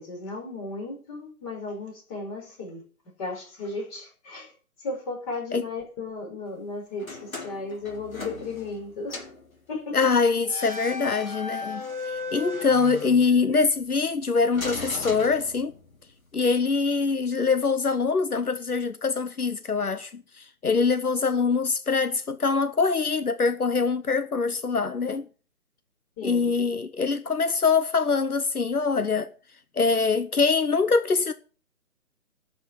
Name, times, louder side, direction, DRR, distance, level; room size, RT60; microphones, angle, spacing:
voice 1, 0.0-2.8 3.2-4.5 4.8-9.2 9.7-10.0 26.2-26.6, left 3 dB, 25° left, 5.0 m, -35 dB
sound 1, 7.0-8.8 9.1-9.4 10.4-13.7 14.5-16.0, left 4 dB, 70° left, 3.7 m, -36 dB
voice 2, 9.9-15.7 16.3-25.3 26.2-29.3 29.7-31.3, left 4 dB, 85° left, 1.0 m, -24 dB
12.0 x 6.5 x 7.2 m
figure-of-eight pair, 140°, 44 cm